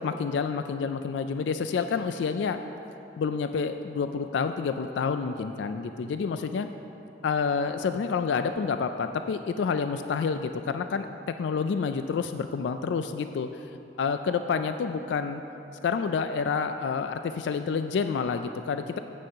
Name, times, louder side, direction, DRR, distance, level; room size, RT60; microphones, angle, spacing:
voice 1, 0.0-2.6 3.2-6.7 7.2-13.5 14.0-15.4 15.8-19.0, left 5 dB, 85° left, 9 dB, 0.3 m, -28 dB
9.0 x 5.5 x 6.5 m, 2.9 s
head